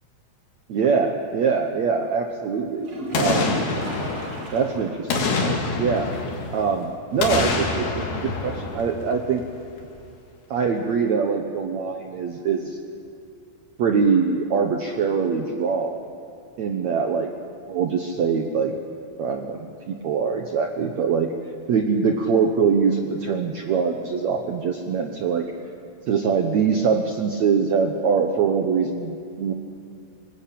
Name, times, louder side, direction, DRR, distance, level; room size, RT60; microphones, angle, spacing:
voice 1, 0.7-3.6 4.5-6.1 6.5-9.4 10.5-12.8 13.8-16.0 16.6-17.3 17.7-18.7 19.2-21.3 21.7-25.5 26.1-29.5, right 5 dB, 80° right, 4 dB, 1.6 m, -23 dB
sound 1, 2.8-5.1 5.4-5.5 5.9-6.0 9.8-9.9, equal, 40° right, 4.3 m, -34 dB
Boom, 3.1-4.7 5.1-6.7 7.2-9.4 9.8-9.9, left 3 dB, 85° left, 5.0 m, -26 dB
24.5 x 20.5 x 8.6 m, 2.5 s
omnidirectional pair, 5.0 m